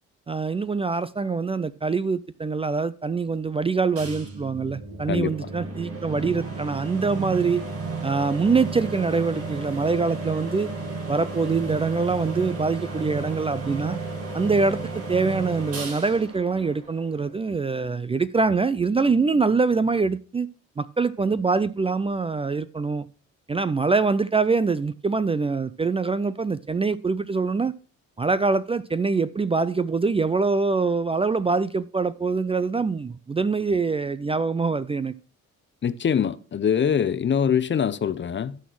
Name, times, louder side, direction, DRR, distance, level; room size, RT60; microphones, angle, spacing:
voice 1, 0.3-7.6 8.0-10.7 11.1-14.0 14.3-20.5 20.8-23.1 23.5-27.7 28.2-35.1, right 4 dB, 20° right, 0.4 m, -24 dB
sound 1, 4.0-17.5, right 3 dB, 50° right, 3.2 m, -34 dB
voice 2, 5.1-5.5 35.8-38.6, left 8 dB, 40° left, 0.7 m, -24 dB
12.5 x 4.3 x 6.1 m
cardioid pair, 90°, 30 cm